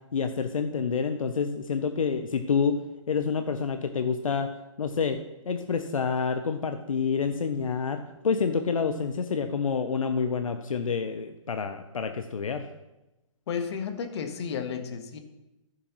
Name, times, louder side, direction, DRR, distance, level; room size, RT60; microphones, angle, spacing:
voice 1, 0.1-2.8 3.1-4.5 4.8-5.2 5.5-12.7, left 5 dB, 85° left, 8 dB, 0.7 m, -28 dB
voice 2, 13.5-15.2, left 6 dB, 55° left, 6 dB, 1.4 m, -32 dB
14.5 x 6.3 x 3.1 m, 0.98 s
hypercardioid pair, 140°, 17 cm